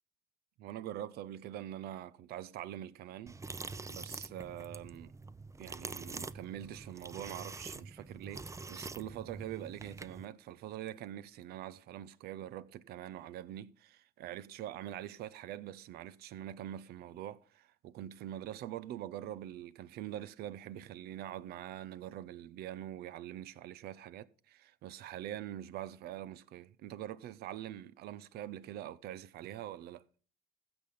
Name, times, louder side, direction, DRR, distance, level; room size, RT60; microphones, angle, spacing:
voice 1, 0.6-3.4 3.9-5.1 5.6-30.0, right 12 dB, 80° right, 0.7 m, -44 dB
sound 1, 3.3-10.2, right 3 dB, 20° right, 0.6 m, -45 dB
15.0 x 5.9 x 5.3 m
cardioid pair, 85°, 16 cm